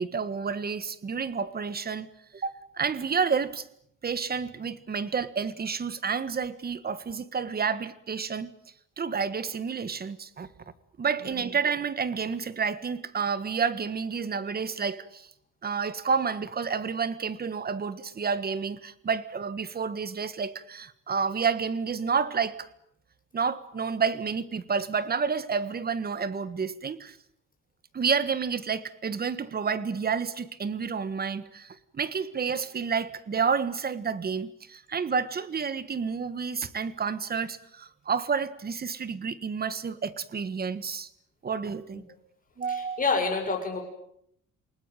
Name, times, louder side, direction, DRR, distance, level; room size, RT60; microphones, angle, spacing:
voice 1, 0.0-3.7 4.0-8.5 9.0-10.5 11.0-15.3 15.6-22.7 23.3-27.2 27.9-41.1 41.4-42.0 42.6-43.0, right 6 dB, 30° right, 15 dB, 1.5 m, -30 dB
voice 2, 42.7-43.8, left 4 dB, 25° left, 3 dB, 7.0 m, -28 dB
28.5 x 19.0 x 9.2 m, 0.73 s
cardioid pair, 150°, 32 cm